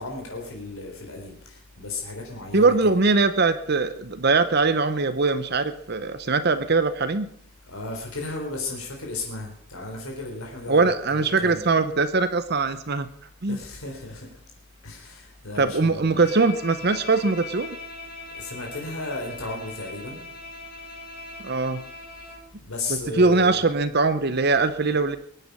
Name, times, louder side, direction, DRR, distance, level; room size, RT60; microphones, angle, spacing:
voice 1, 0.0-2.9 7.7-11.7 13.5-14.4 14.8-16.2 18.3-20.2 22.3-22.4 22.6-23.7, left 3 dB, 75° left, 0 dB, 3.8 m, -34 dB
voice 2, 2.5-7.3 10.7-13.1 13.4-13.6 15.6-17.8 21.4-21.8 22.9-25.2, right 3 dB, 45° right, 11 dB, 0.7 m, -21 dB
Bowed string instrument, 16.1-22.5, left 2 dB, 45° left, 5.4 m, -40 dB
22.5 x 9.2 x 5.4 m, 0.62 s
head